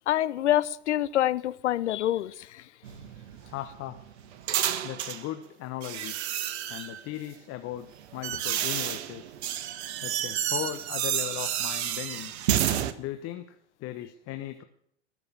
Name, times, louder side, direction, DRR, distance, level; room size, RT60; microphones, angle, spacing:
voice 1, 0.1-2.6, left 12 dB, 70° left, 16 dB, 0.8 m, -26 dB
sound 1, 2.8-5.3 5.8-7.0 7.8-12.9, right 10 dB, 65° right, 1.3 m, -30 dB
voice 2, 3.5-4.0 4.8-6.2 6.7-7.9 8.1-9.4 10.0-12.3 13.0-13.5 13.8-14.6, left 13 dB, 40° left, 9 dB, 1.3 m, -37 dB
19.5 x 6.8 x 8.5 m, 0.68 s
figure-of-eight pair, 80°, 36 cm